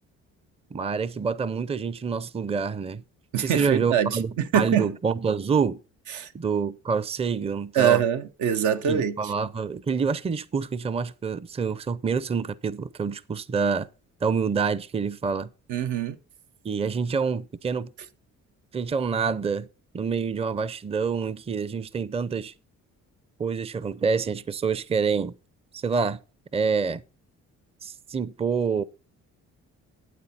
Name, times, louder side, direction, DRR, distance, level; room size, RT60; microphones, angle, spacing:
voice 1, 0.7-3.0 3.4-5.8 6.3-8.0 8.9-13.9 14.2-15.5 16.6-17.9 18.7-19.7 19.9-22.5 23.4-25.3 25.7-26.2 26.5-27.0 27.8-28.8, right 5 dB, 20° right, 0.5 m, -27 dB
voice 2, 3.3-4.9 6.1-6.3 7.7-9.3 15.7-16.2, right 9 dB, 75° right, 0.9 m, -24 dB
12.5 x 8.5 x 4.2 m
cardioid pair, 90°, 30 cm